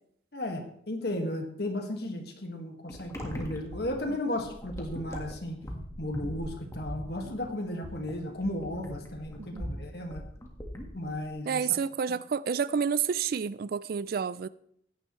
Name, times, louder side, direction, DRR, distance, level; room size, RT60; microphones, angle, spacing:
voice 1, 0.3-5.6 6.0-10.2 10.9-11.7, left 1 dB, 60° left, 1.8 m, -34 dB
sound 1, 2.9-11.3, equal, 15° left, 1.6 m, -41 dB
voice 2, 11.5-14.5, right 6 dB, 55° right, 0.3 m, -29 dB
15.5 x 10.5 x 3.2 m
head